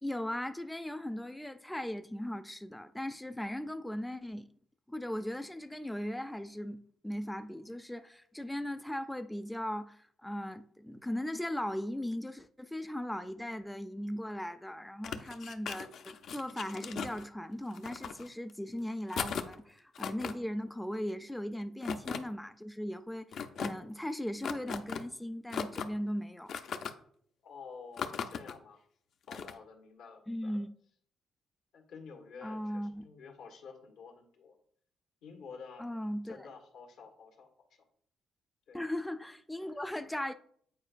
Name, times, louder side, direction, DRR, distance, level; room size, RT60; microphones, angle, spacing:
voice 1, 0.0-4.5 4.9-26.5 30.3-30.7 32.4-33.0 35.8-36.5 38.7-40.3, left 1 dB, 5° left, 0.3 m, -38 dB
sound 1, 15.0-17.2 17.7-18.5 19.1-19.5 19.9-20.3 21.8-22.2 23.3-23.7 24.4-25.0 25.5-26.0 26.5-26.9 28.0-28.5 29.3-29.5, left 7 dB, 65° left, 0.5 m, -37 dB
voice 2, 27.4-28.8 29.3-30.6 31.7-34.6 35.2-35.9 36.2-37.5 37.8-37.9 38.7-38.8 39.6-39.7, left 5 dB, 85° left, 1.4 m, -50 dB
8.6 x 4.5 x 2.5 m
cardioid pair, 90°, 0 cm